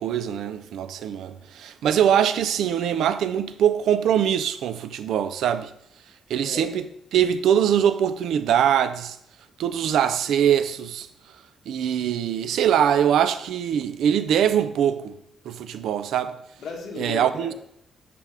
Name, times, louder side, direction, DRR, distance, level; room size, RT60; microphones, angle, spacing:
voice 1, 0.0-5.7 6.3-6.8 7.1-9.2 9.6-11.1 11.7-15.1 15.5-16.4 17.0-17.5, right 9 dB, 70° right, 0.4 m, -22 dB
voice 2, 6.4-6.8 16.6-17.5, left 4 dB, 55° left, 1.6 m, -35 dB
11.5 x 5.0 x 3.4 m
cardioid pair, 170°, 0 cm